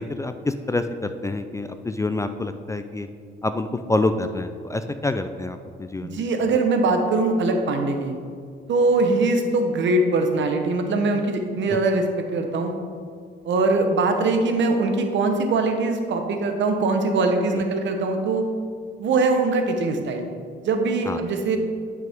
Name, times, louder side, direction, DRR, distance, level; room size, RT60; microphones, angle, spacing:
voice 1, 0.0-3.1 3.4-6.2 11.7-11.8 17.5-17.6 21.1-21.2, left 2 dB, 15° left, 9 dB, 0.4 m, -27 dB
voice 2, 6.0-8.1 8.7-12.7 13.4-18.4 19.0-20.3 20.6-21.6, right 3 dB, 65° right, 5 dB, 1.1 m, -22 dB
10.5 x 6.0 x 3.6 m, 2.1 s
cardioid pair, 90°, 20 cm